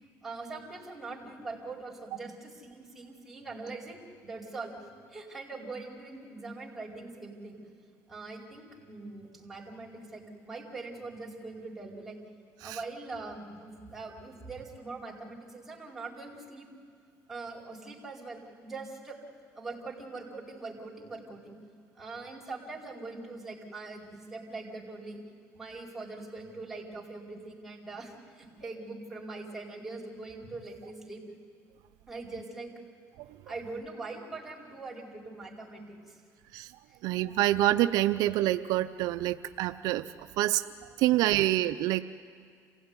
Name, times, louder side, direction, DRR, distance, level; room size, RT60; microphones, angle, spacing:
voice 1, 0.2-7.6 8.1-12.2 12.6-16.7 17.3-19.2 19.5-21.6 21.9-25.2 25.5-31.2 32.1-32.7 33.5-36.2 36.9-37.0, right 3 dB, 5° right, -4 dB, 4.8 m, -42 dB
voice 2, 37.0-40.1 40.4-42.0, right 15 dB, 75° right, 10 dB, 0.6 m, -27 dB
27.5 x 16.5 x 9.7 m, 2.1 s
cardioid pair, 115°, 7 cm